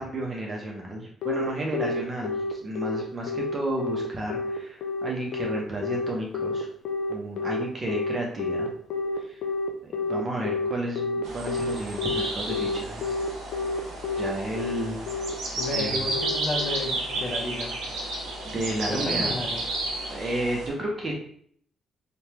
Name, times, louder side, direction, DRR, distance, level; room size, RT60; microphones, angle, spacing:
voice 1, 0.0-6.7 7.1-8.7 9.2-9.4 10.0-13.2 14.2-15.3 15.7-16.0 18.4-19.3 20.1-21.3, right 1 dB, 35° right, -1 dB, 0.6 m, -32 dB
Telephone, 1.2-17.4, left 3 dB, 75° left, 0.4 m, -29 dB
sound 1, 11.2-20.7, right 2 dB, 85° right, 0.7 m, -32 dB
voice 2, 15.6-17.8 18.9-19.6, left 2 dB, 30° left, -1 dB, 0.6 m, -32 dB
3.1 x 2.1 x 2.8 m, 0.62 s
cardioid pair, 90°, 0 cm